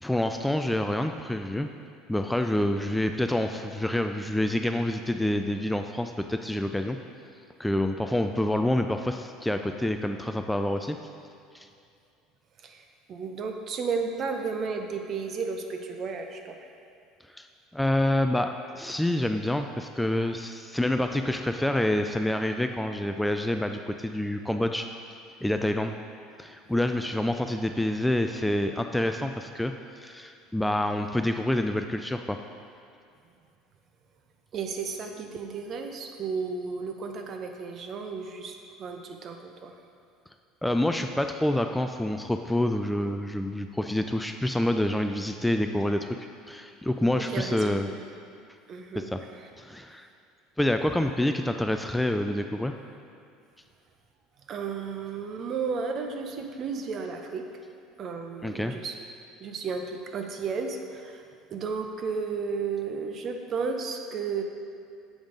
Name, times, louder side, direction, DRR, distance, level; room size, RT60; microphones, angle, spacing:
voice 1, 0.0-1.7 2.1-7.0 7.6-11.0 11.5-11.7 17.3-17.5 17.7-24.9 25.4-25.9 26.4-32.4 40.6-46.1 46.5-47.9 48.9-49.2 49.6-50.1 50.6-52.7 58.4-58.8, left 1 dB, 5° left, 6 dB, 0.3 m, -27 dB
voice 2, 12.6-16.6 34.5-39.7 47.2-47.7 48.7-49.1 54.5-57.4 58.0-58.9 59.4-61.2 61.5-64.4, right 5 dB, 45° right, 4 dB, 0.7 m, -33 dB
7.2 x 5.1 x 3.8 m, 2.4 s
supercardioid pair, 85°, 0 cm